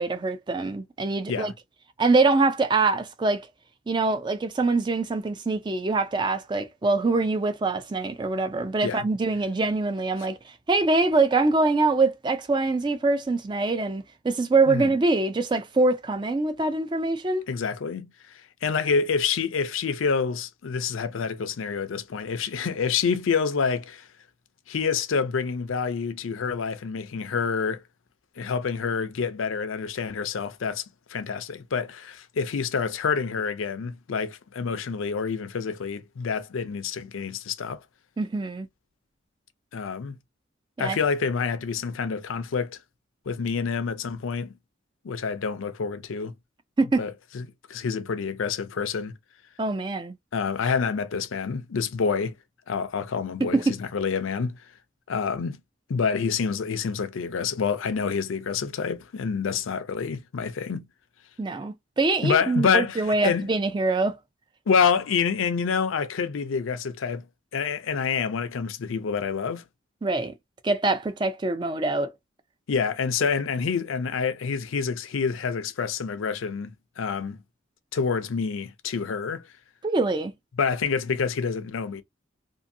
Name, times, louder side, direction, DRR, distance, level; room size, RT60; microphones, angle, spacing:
voice 1, 0.0-1.5 2.0-3.5 3.9-10.4 10.7-17.4 38.2-38.7 40.8-41.0 46.8-47.0 49.6-50.1 53.4-53.7 61.4-64.2 70.0-70.3 70.6-72.1 79.8-80.3, right 3 dB, 25° right, 0.3 m, -24 dB
voice 2, 17.5-18.1 18.6-24.1 24.7-27.8 28.4-37.8 39.7-40.2 40.8-42.8 43.3-44.5 45.0-46.3 47.0-49.1 50.3-52.3 52.7-54.6 55.1-55.6 55.9-60.9 62.2-63.5 64.7-67.3 67.5-69.6 72.7-77.4 77.9-79.5 80.6-82.0, left 5 dB, 85° left, 0.5 m, -27 dB
2.6 x 2.5 x 2.6 m
head